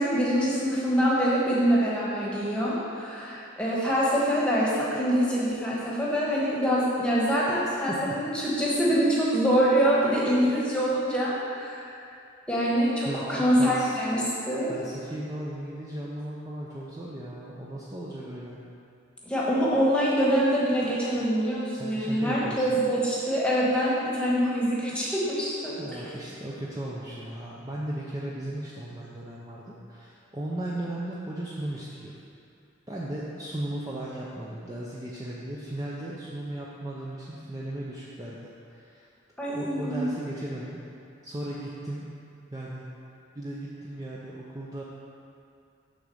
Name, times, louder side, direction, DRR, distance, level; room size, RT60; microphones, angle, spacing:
voice 1, 0.0-11.9 12.5-14.7 19.2-26.0 39.4-40.0, equal, 5° left, -7 dB, 1.2 m, -25 dB
voice 2, 7.9-8.2 13.0-14.0 14.7-18.6 21.7-22.9 25.8-32.2 32.9-38.4 38.7-39.1 39.5-40.8 41.2-42.0 42.5-42.9 43.3-44.8, right 1 dB, 20° right, -6 dB, 0.5 m, -36 dB
6.5 x 3.8 x 6.4 m, 2.5 s
head